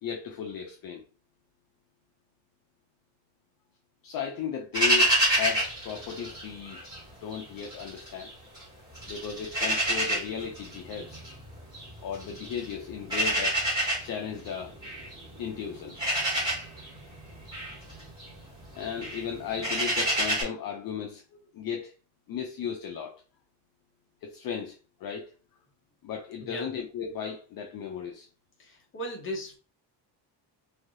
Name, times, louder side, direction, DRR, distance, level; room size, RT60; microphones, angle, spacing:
voice 1, 0.0-1.0 4.0-6.8 7.2-8.3 9.0-11.2 12.0-13.6 14.0-14.8 15.4-16.0 18.7-21.2 21.5-21.9 22.3-23.2 24.2-25.3 26.0-28.3, left 7 dB, 55° left, 0.5 m, -35 dB
sound 1, 4.7-7.0 7.3-8.6 8.9-20.4, right 1 dB, 10° right, 1.6 m, -29 dB
voice 2, 28.6-29.6, equal, 30° left, 0.9 m, -37 dB
3.2 x 2.6 x 2.6 m
cardioid pair, 170°, 43 cm